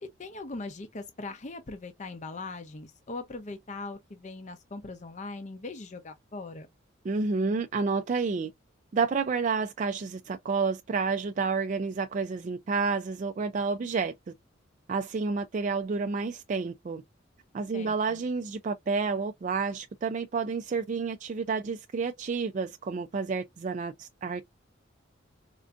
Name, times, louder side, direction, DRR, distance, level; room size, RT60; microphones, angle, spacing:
voice 1, 0.0-6.7 17.7-18.2, left 3 dB, 35° left, 0.5 m, -40 dB
voice 2, 7.0-8.5 8.9-14.1 14.9-17.0 17.5-24.5, right 4 dB, 40° right, 0.3 m, -30 dB
4.4 x 2.5 x 2.4 m
head